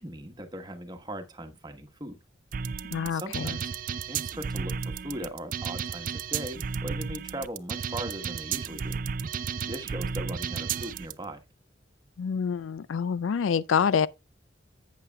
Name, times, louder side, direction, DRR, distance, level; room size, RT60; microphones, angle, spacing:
voice 1, 0.0-2.2 3.0-3.7 4.1-9.0 9.6-11.4, right 1 dB, 20° right, 1.1 m, -39 dB
sound 1, 2.5-11.1, right 6 dB, 45° right, 0.4 m, -33 dB
voice 2, 2.9-3.5 12.2-14.1, left 6 dB, 90° left, 0.4 m, -26 dB
11.0 x 8.3 x 2.3 m
head